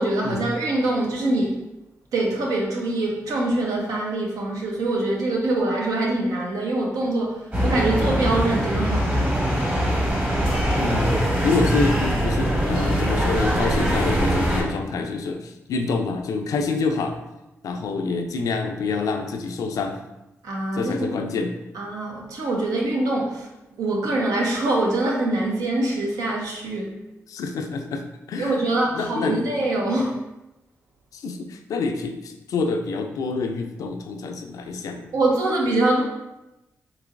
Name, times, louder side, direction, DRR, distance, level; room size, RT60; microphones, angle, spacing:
voice 1, 0.0-1.6 2.1-9.4 20.4-21.2 21.7-23.5 23.8-26.9 28.4-30.2 35.1-36.0, right 2 dB, 80° right, -1 dB, 0.7 m, -24 dB
sound 1, 7.5-14.6, equal, 30° right, 1.3 m, -22 dB
voice 2, 10.7-17.2 17.6-20.0 20.7-21.5 27.3-28.6 28.9-29.5 31.1-35.1, left 4 dB, 75° left, 5 dB, 0.4 m, -27 dB
3.8 x 3.0 x 2.5 m, 0.95 s
supercardioid pair, 50°, 6 cm